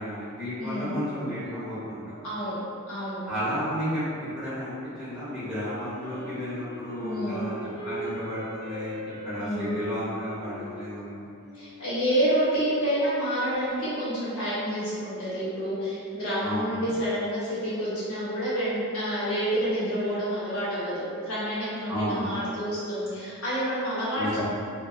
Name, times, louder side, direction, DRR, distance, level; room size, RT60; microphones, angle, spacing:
voice 1, 0.0-2.1 3.3-4.1 4.3-7.5 7.8-8.9 9.2-11.2 16.4-16.9 21.9-22.3 24.1-24.4, equal, 5° right, -15 dB, 1.3 m, -32 dB
voice 2, 0.6-1.0 2.2-2.6 2.9-3.2 7.0-7.4 9.4-9.7 11.5-24.4, equal, 85° left, -11 dB, 1.1 m, -28 dB
Wind instrument woodwind instrument, 5.5-12.3, right 1 dB, 45° right, 0.6 m, -39 dB
2.8 x 2.5 x 2.6 m, 2.4 s
head